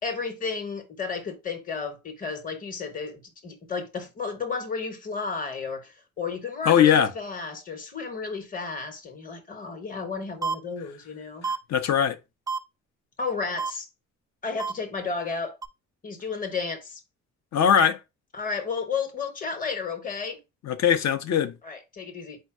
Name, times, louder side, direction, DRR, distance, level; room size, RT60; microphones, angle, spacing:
voice 1, 0.0-11.5 13.2-13.9 14.4-15.6 16.0-17.0 18.3-20.4 21.6-22.4, left 5 dB, 30° left, 1.0 m, -32 dB
voice 2, 6.6-7.1 11.4-12.2 17.5-18.0 20.6-21.5, left 8 dB, 60° left, 0.7 m, -21 dB
sound 1, 10.4-10.5 11.4-11.6 12.5-12.6 13.6-13.7 14.6-14.7 15.6-15.7, right 5 dB, 10° right, 0.4 m, -28 dB
4.4 x 2.2 x 4.7 m
cardioid pair, 90°, 30 cm